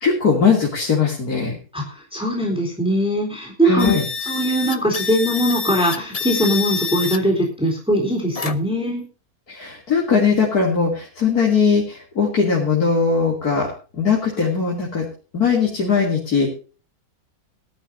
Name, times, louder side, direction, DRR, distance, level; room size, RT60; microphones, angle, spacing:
voice 1, 0.0-1.6 3.6-4.1 9.5-13.7 14.0-15.1 15.3-16.5, left 5 dB, 80° left, -2 dB, 3.4 m, -19 dB
voice 2, 1.7-3.9 4.3-9.0, equal, 5° right, 1 dB, 3.8 m, -21 dB
sound 1, 3.8-7.2 8.3-8.8, left 5 dB, 35° left, 0.7 m, -27 dB
19.0 x 12.5 x 2.7 m, 0.36 s
omnidirectional pair, 1.6 m